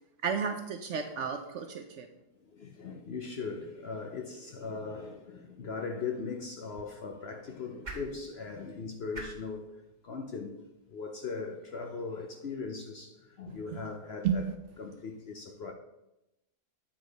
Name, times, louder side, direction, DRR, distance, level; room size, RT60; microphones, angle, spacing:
voice 1, 0.2-2.1 14.2-14.5, right 7 dB, 65° right, 0.8 m, -32 dB
voice 2, 2.4-10.6 10.9-14.5 14.8-15.7, left 4 dB, 60° left, 0.7 m, -39 dB
sound 1, 6.0-12.3, right 2 dB, 30° right, 1.3 m, -51 dB
8.6 x 4.8 x 4.0 m
omnidirectional pair, 1.6 m